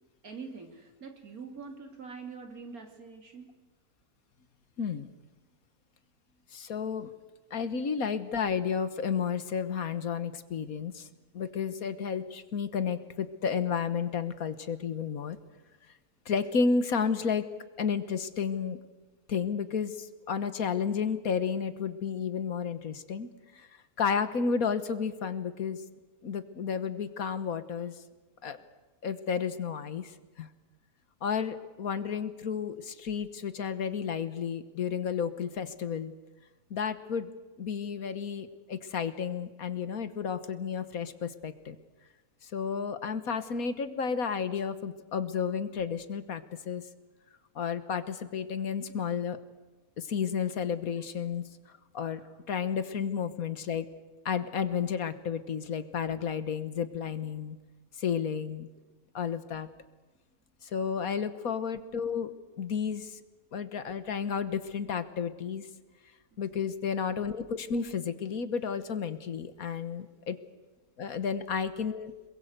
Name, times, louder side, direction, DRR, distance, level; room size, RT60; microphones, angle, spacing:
voice 1, 0.2-3.5 7.6-7.8 52.2-52.3, right 5 dB, 65° right, 4 dB, 3.3 m, -44 dB
voice 2, 4.8-5.1 6.5-7.1 7.5-11.1 11.3-15.4 16.3-17.4 17.8-18.8 19.3-23.3 23.5-23.7 24.0-25.8 26.2-27.9 28.4-28.6 29.0-30.1 30.4-30.5 31.2-36.1 36.7-37.3 37.6-41.8 42.4-46.8 47.6-49.4 50.0-51.4 51.9-53.9 54.3-57.6 58.0-58.7 59.1-59.7 60.6-62.3 62.6-63.2 63.5-65.7 66.4-70.4 71.0-72.1, left 6 dB, 65° left, 12 dB, 1.6 m, -32 dB
27.0 x 22.0 x 8.0 m, 1.2 s
omnidirectional pair, 1.7 m